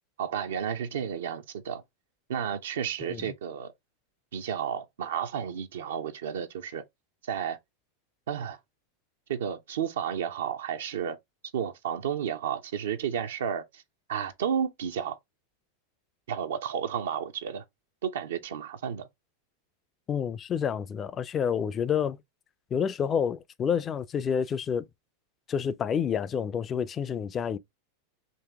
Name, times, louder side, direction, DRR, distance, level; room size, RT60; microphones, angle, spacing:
voice 1, 0.2-1.8 2.3-3.7 4.3-6.8 7.2-7.6 8.3-8.6 9.3-11.2 11.5-13.8 14.1-15.2 16.3-17.6 18.0-19.1, right 8 dB, 65° right, 0.5 m, -32 dB
voice 2, 20.1-22.2 22.7-24.8 25.5-27.6, left 7 dB, 30° left, 0.4 m, -29 dB
4.0 x 2.7 x 3.3 m
figure-of-eight pair, 90°, 0 cm